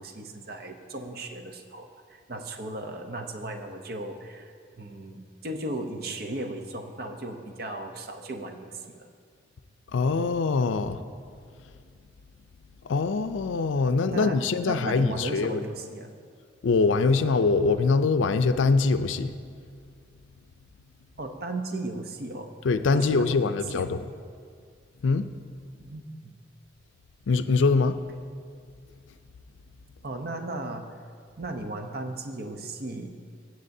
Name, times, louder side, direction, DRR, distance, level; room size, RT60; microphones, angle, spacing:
voice 1, 0.0-9.1 14.1-16.1 21.2-22.5 22.9-24.0 25.8-26.3 30.0-30.9 31.4-33.1, right 2 dB, 55° right, 5 dB, 0.7 m, -36 dB
voice 2, 9.9-11.0 12.9-15.6 16.6-19.3 22.6-24.0 25.0-25.3 27.3-28.0, left 4 dB, 90° left, 11 dB, 0.4 m, -23 dB
16.5 x 8.0 x 2.7 m, 2.1 s
head